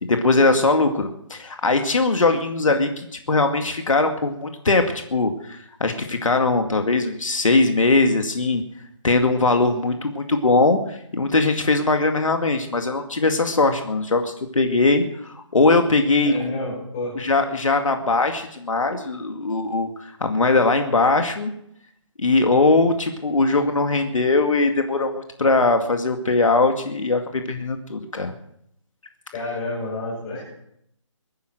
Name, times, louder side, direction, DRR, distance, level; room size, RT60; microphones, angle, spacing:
voice 1, 0.0-4.8 5.1-8.6 9.0-16.3 17.2-21.5 22.2-28.3, left 3 dB, 80° left, 5 dB, 2.2 m, -20 dB
voice 2, 16.2-17.2 29.3-30.5, left 2 dB, 15° left, -5 dB, 7.1 m, -29 dB
23.5 x 9.9 x 6.2 m, 0.73 s
hypercardioid pair, 175°, 16 cm